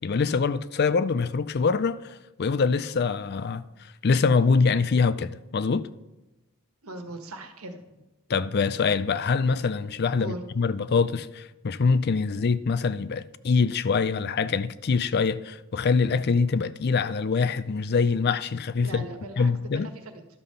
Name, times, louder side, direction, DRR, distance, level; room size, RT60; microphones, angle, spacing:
voice 1, 0.0-3.6 4.0-5.9 8.3-19.0 19.4-19.9, left 4 dB, 50° left, 0.4 m, -24 dB
voice 2, 6.8-8.0 10.2-10.4 18.8-20.3, right 2 dB, 85° right, 1.5 m, -39 dB
12.0 x 5.6 x 6.6 m
head